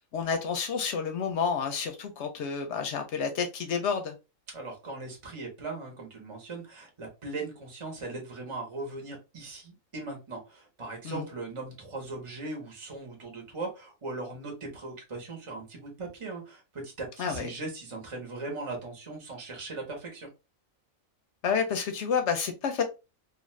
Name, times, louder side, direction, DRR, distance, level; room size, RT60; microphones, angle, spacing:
voice 1, 0.1-4.1 11.0-11.3 17.2-17.5 21.4-22.8, left 6 dB, 70° left, 0.8 m, -29 dB
voice 2, 4.5-20.3, right 3 dB, 30° right, 0.8 m, -39 dB
2.5 x 2.3 x 3.0 m
omnidirectional pair, 1.3 m